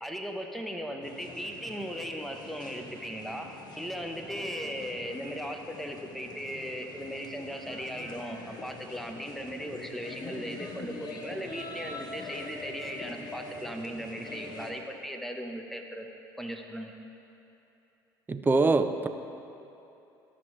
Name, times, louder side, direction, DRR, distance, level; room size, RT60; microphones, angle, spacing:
voice 1, 0.0-3.5 3.8-16.1 16.4-16.9, equal, ahead, 3 dB, 0.9 m, -37 dB
sound 1, 1.0-14.7, left 2 dB, 40° left, 1.1 m, -44 dB
voice 2, 18.3-19.1, right 3 dB, 20° right, 8 dB, 0.5 m, -24 dB
13.0 x 6.0 x 3.2 m, 2.9 s
hypercardioid pair, 65°, 11 cm